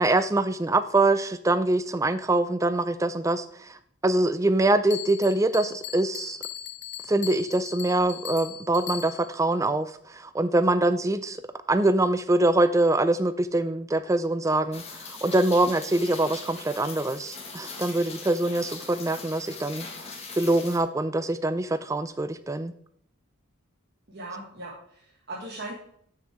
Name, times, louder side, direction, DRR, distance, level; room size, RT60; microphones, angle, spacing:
voice 1, 0.0-6.4 7.1-11.4 11.7-19.9 20.4-22.7, right 2 dB, 15° right, 12 dB, 0.3 m, -24 dB
Bell, 4.9-9.4, left 11 dB, 50° left, 0.9 m, -39 dB
Rain, 14.7-20.8, left 4 dB, 30° left, 1.5 m, -41 dB
voice 2, 24.1-25.7, right 2 dB, 50° right, -5 dB, 1.9 m, -39 dB
12.5 x 6.2 x 3.5 m, 0.67 s
head